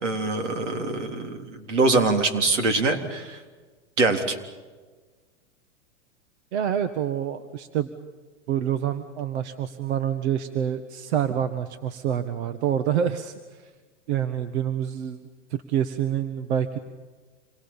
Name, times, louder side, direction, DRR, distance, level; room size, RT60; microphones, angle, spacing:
voice 1, 0.0-3.4 4.0-4.4, right 3 dB, 85° right, 6 dB, 3.8 m, -24 dB
voice 2, 6.5-7.9 8.5-13.7 14.1-15.2 15.5-16.8, right 9 dB, 65° right, 10 dB, 1.7 m, -27 dB
28.0 x 23.0 x 7.3 m, 1.3 s
hypercardioid pair, 130°, 35 cm